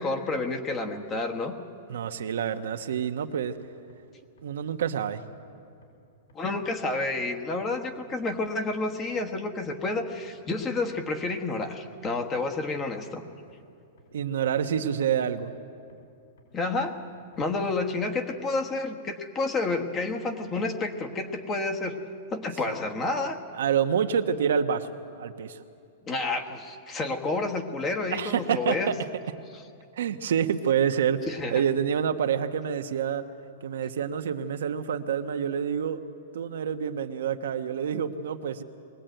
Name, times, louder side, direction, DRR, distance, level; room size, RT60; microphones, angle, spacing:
voice 1, 0.0-1.5 6.3-13.2 16.5-17.0 17.4-22.0 22.3-23.4 26.1-28.9 31.3-31.6, left 3 dB, 15° left, 4 dB, 1.3 m, -30 dB
voice 2, 1.9-3.5 4.4-5.2 14.1-15.5 22.7-22.8 23.5-25.6 28.1-28.9 30.0-33.2 33.6-36.0 36.3-38.6, right 8 dB, 75° right, 7 dB, 1.2 m, -27 dB
sound 1, 3.4-3.5 3.9-4.0 4.4-4.5 4.9-5.0 5.3-5.4 5.8-5.9 6.3-6.4 6.8-6.9 7.3-7.4 7.7-7.8 8.2-8.3 8.7-8.8 9.2-9.3 9.7-9.8 10.1-10.2 10.6-10.7 11.1-11.2 11.6-11.7 12.1-12.2 12.5-12.6 13.0-13.1 13.5-13.6 14.0-14.1 14.5-14.6 14.9-15.0 15.4-15.5 15.9-16.0 16.4-16.5 16.9-17.0 17.3-17.4 17.8-17.9 18.3-18.4, right 2 dB, 80° left, 6.2 m, -57 dB
22.0 x 18.0 x 9.1 m, 2.5 s
supercardioid pair, 175°, 0 cm